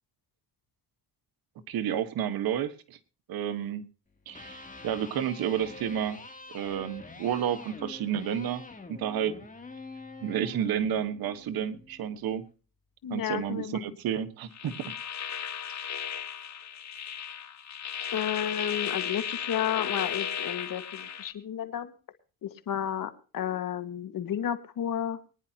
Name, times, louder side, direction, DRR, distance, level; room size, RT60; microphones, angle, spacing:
voice 1, 1.7-3.0 3.3-3.8 4.3-6.2 6.5-8.6 8.9-9.3 10.2-12.4 13.1-14.7, right 9 dB, 85° right, 10 dB, 1.5 m, -31 dB
Electric guitar, 4.2-12.3, left 3 dB, 20° left, 2.8 m, -46 dB
voice 2, 13.0-13.8 18.1-21.9 22.4-25.2, left 10 dB, 70° left, 10 dB, 1.8 m, -32 dB
sound 1, 14.5-21.3, left 8 dB, 50° left, 1.4 m, -35 dB
22.5 x 10.5 x 2.9 m, 0.36 s
cardioid pair, 80°, 35 cm